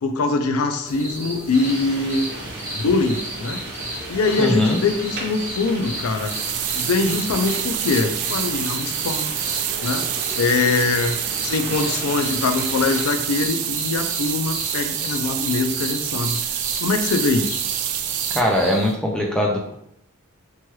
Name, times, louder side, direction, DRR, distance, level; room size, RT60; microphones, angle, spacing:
voice 1, 0.0-2.3 2.7-3.6 4.1-6.3 6.7-9.3 9.8-10.0 10.4-16.4 16.8-17.6, left 3 dB, 80° left, 6 dB, 0.4 m, -23 dB
sound 1, 0.8-18.9, right 1 dB, 15° right, 0.8 m, -34 dB
sound 2, 1.5-13.1, right 2 dB, 50° right, 0.7 m, -35 dB
voice 2, 4.4-4.8 18.3-19.7, left 1 dB, 5° left, -1 dB, 0.3 m, -21 dB
sound 3, 6.0-18.4, right 10 dB, 90° right, 0.3 m, -27 dB
3.1 x 2.2 x 3.0 m, 0.74 s
head